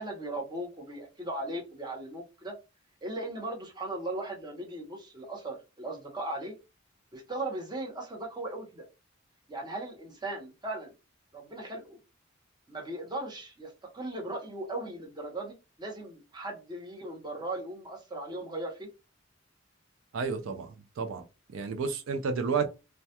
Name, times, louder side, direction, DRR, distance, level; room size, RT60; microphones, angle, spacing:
voice 1, 0.0-2.5 3.0-6.5 7.1-8.8 9.5-10.9 11.3-12.0 12.7-18.9, right 2 dB, 20° right, 0.7 m, -38 dB
voice 2, 20.1-21.2 21.5-22.7, right 5 dB, 80° right, 0.4 m, -31 dB
2.2 x 2.1 x 2.7 m
head